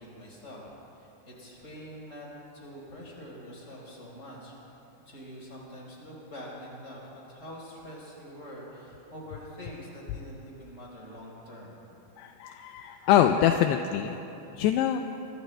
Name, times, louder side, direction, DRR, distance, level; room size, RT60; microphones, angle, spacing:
voice 1, 0.0-2.3 2.5-4.5 5.0-11.8, equal, 15° left, -5 dB, 4.1 m, -45 dB
voice 2, 12.2-14.2 14.5-15.0, left 10 dB, 85° left, 6 dB, 2.4 m, -24 dB
24.0 x 24.0 x 2.2 m, 3.0 s
omnidirectional pair, 5.2 m